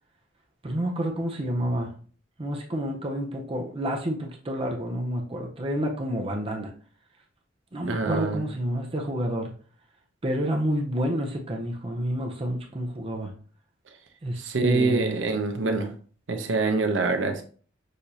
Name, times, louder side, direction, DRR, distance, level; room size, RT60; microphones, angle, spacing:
voice 1, 0.6-1.9 2.4-6.7 7.7-9.5 10.2-13.3 14.2-15.2, equal, 30° right, 1 dB, 0.7 m, -29 dB
voice 2, 7.9-8.5 14.3-15.9 16.3-17.4, right 3 dB, 80° right, 5 dB, 0.8 m, -25 dB
6.5 x 2.7 x 2.8 m, 0.42 s
head